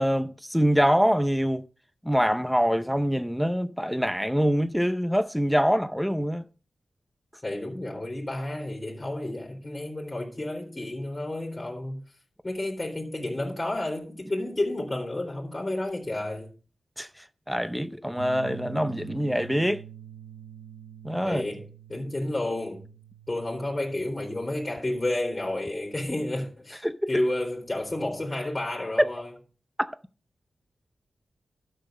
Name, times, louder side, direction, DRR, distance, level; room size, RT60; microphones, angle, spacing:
voice 1, 0.0-1.6 2.0-6.4 17.0-19.8 21.0-21.4 26.8-27.1 29.8-30.0, equal, ahead, 0.6 m, -25 dB
voice 2, 7.4-12.0 12.4-16.5 21.2-21.6 21.9-22.9 23.3-29.3, left 1 dB, 20° left, 3.3 m, -31 dB
sound 1, 18.2-24.8, right 8 dB, 75° right, 0.7 m, -45 dB
12.0 x 6.6 x 6.3 m
wide cardioid pair, 90°, 0 cm